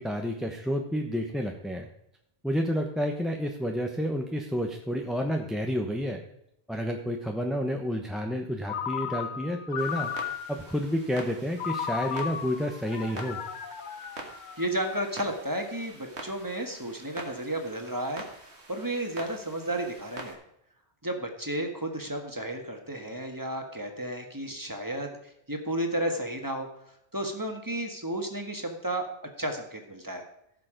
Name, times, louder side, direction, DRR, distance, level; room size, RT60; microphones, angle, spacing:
voice 1, 0.0-1.9 2.4-6.2 6.7-10.1 10.5-13.4, equal, ahead, 2 dB, 0.9 m, -30 dB
Ringtone, 8.7-10.7 11.6-14.9, left 7 dB, 50° left, 0.8 m, -35 dB
Clock, 9.8-20.3, right 2 dB, 80° right, 2.2 m, -45 dB
voice 2, 14.6-20.4 21.0-25.2 25.5-29.1 29.4-30.2, right 1 dB, 20° right, 4 dB, 1.6 m, -33 dB
15.5 x 6.8 x 5.1 m, 0.79 s
omnidirectional pair, 1.1 m